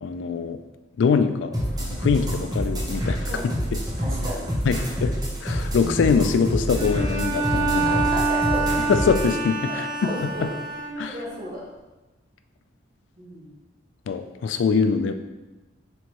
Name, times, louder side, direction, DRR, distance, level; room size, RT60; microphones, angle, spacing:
voice 1, 0.0-0.6 1.0-3.3 4.7-5.1 5.4-8.0 8.9-10.5 11.0-11.1 14.1-15.2, left 5 dB, 85° left, 9 dB, 0.3 m, -23 dB
sound 1, 1.5-9.3, equal, 20° right, 0.8 m, -27 dB
voice 2, 4.0-4.5 7.8-8.9 9.6-10.5 11.1-11.6 13.2-13.5, equal, 55° right, -6 dB, 1.4 m, -34 dB
Bowed string instrument, 6.7-11.3, right 3 dB, 75° right, 1.2 m, -26 dB
4.4 x 3.4 x 3.0 m, 1.1 s
head